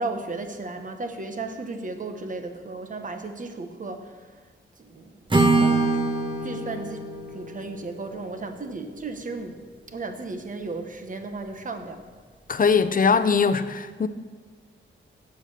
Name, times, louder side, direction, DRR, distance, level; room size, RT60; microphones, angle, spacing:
voice 1, 0.0-4.1 4.8-5.2 5.5-6.1 6.4-7.1 7.3-9.6 9.9-12.0, right 3 dB, 40° right, 1.2 m, -34 dB
Acoustic guitar / Strum, 5.3-9.3, right 3 dB, 25° right, 1.2 m, -25 dB
voice 2, 12.5-14.1, left 5 dB, 45° left, 0.7 m, -21 dB
12.5 x 9.1 x 6.7 m
wide cardioid pair, 130°, 20 cm